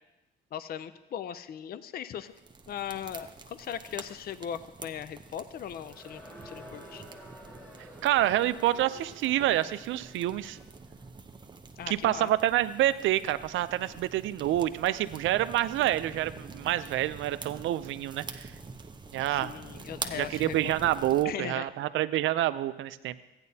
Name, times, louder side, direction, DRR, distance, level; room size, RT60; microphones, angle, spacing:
voice 1, 0.5-2.3 2.7-7.0 11.8-12.3 19.3-20.7 21.2-21.7, left 9 dB, 50° left, 14 dB, 0.5 m, -39 dB
sound 1, 2.3-21.3, right 4 dB, 20° right, 0.7 m, -46 dB
Crowd, 5.8-10.8, equal, 10° left, 1.4 m, -50 dB
voice 2, 8.0-10.6 11.9-18.5 19.1-19.5 20.1-23.1, right 13 dB, 75° right, 14 dB, 0.5 m, -27 dB
15.0 x 9.6 x 2.8 m, 1.0 s
cardioid pair, 90°, 20 cm